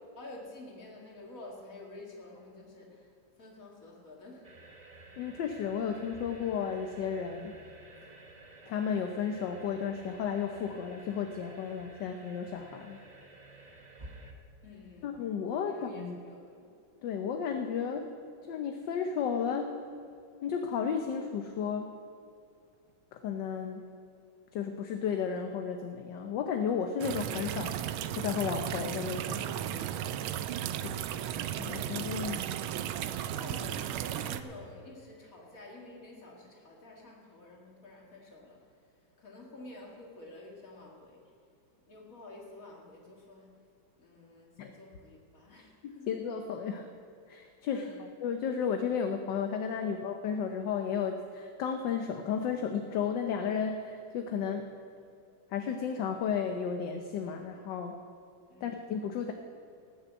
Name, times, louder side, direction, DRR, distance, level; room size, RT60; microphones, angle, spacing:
voice 1, 0.2-4.5 14.6-15.2 15.6-16.7 33.3-38.6 39.2-41.2 41.9-43.5 44.0-46.1 47.7-48.1 49.8-49.9 58.5-58.8, left 2 dB, 45° left, -2 dB, 2.7 m, -49 dB
sound 1, 4.4-14.3, right 2 dB, 25° right, 1.0 m, -52 dB
voice 2, 5.2-7.6 8.7-13.0 15.0-16.2 17.0-18.1 18.5-19.7 20.4-21.9 23.1-23.9 24.5-29.5 30.8-31.0 31.6-32.4 44.6-44.7 45.8-46.9 47.3-47.9 48.2-54.7 55.5-58.0 58.6-59.3, left 7 dB, 70° left, 5 dB, 1.4 m, -33 dB
sound 2, 27.0-34.4, right 10 dB, 90° right, 1.4 m, -35 dB
18.0 x 7.3 x 8.2 m, 2.4 s
omnidirectional pair, 2.2 m